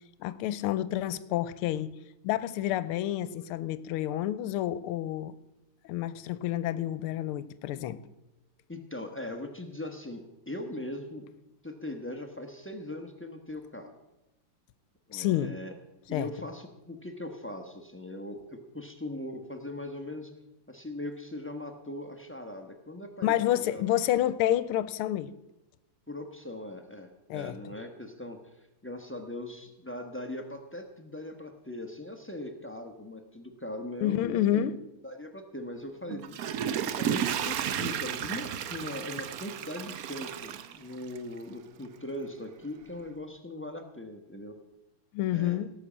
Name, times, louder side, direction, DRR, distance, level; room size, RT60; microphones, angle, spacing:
voice 1, 0.2-1.9 2.2-5.3 5.8-8.0 15.1-15.5 16.1-16.3 23.2-25.3 27.3-27.6 34.0-34.8 45.1-45.7, left 12 dB, 90° left, 16 dB, 1.5 m, -29 dB
voice 2, 8.7-11.3 11.6-13.9 15.1-15.7 16.1-20.3 20.7-23.8 26.1-34.7 35.0-36.6 37.0-44.6 45.3-45.6, left 1 dB, 15° left, 5 dB, 0.4 m, -40 dB
Water / Toilet flush, 36.1-41.4 41.8-41.9, right 9 dB, 75° right, 0.8 m, -33 dB
17.0 x 6.4 x 7.3 m, 0.96 s
omnidirectional pair, 2.4 m